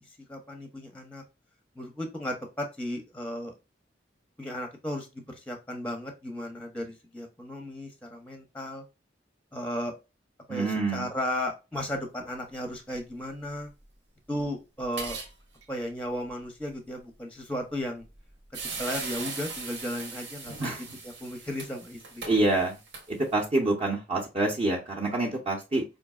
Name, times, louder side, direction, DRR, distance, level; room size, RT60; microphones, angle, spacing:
voice 1, 0.3-1.2 1.8-3.5 4.4-8.8 9.5-9.9 10.5-13.7 14.3-15.2 15.7-18.0 18.8-20.7 21.0-22.3, left 1 dB, 5° left, 4 dB, 0.6 m, -35 dB
voice 2, 10.5-11.1 20.6-20.8 22.2-22.8 23.1-25.8, right 2 dB, 35° right, -2 dB, 0.7 m, -26 dB
sound 1, 14.8-15.3 15.6-15.7 18.0-18.2 18.5-23.5, right 4 dB, 80° right, 1.2 m, -39 dB
5.1 x 2.6 x 2.3 m, 0.27 s
head